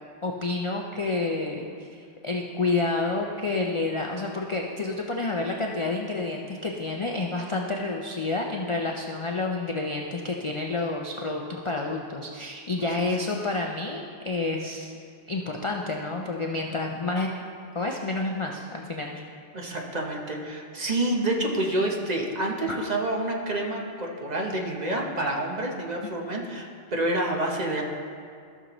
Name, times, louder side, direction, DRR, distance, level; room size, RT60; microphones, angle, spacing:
voice 1, 0.2-14.9 15.3-17.3 17.7-19.2 22.7-22.8, left 3 dB, 45° left, 1 dB, 0.4 m, -29 dB
voice 2, 19.5-27.8, right 1 dB, 40° right, 0 dB, 0.9 m, -28 dB
14.5 x 6.4 x 3.0 m, 2.3 s
omnidirectional pair, 1.2 m